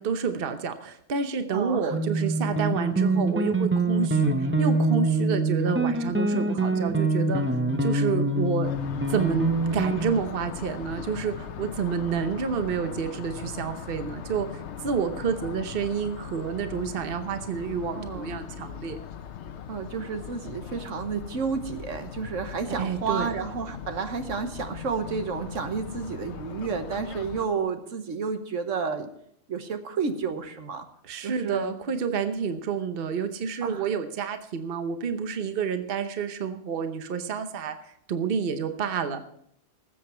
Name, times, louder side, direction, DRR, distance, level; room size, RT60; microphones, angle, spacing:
voice 1, 0.0-7.4 7.8-8.7 9.1-19.0 22.8-23.3 31.0-39.2, right 6 dB, 50° right, 8 dB, 1.0 m, -29 dB
voice 2, 1.5-2.0 17.9-18.4 19.7-29.1 29.5-30.9 31.2-31.7 33.6-33.9, right 5 dB, 75° right, 7 dB, 1.4 m, -31 dB
sound 1, 1.9-10.2, right 2 dB, 15° right, 0.6 m, -25 dB
sound 2, 8.6-27.5, left 8 dB, 65° left, 1.0 m, -39 dB
19.5 x 7.9 x 4.4 m, 0.71 s
omnidirectional pair, 1.3 m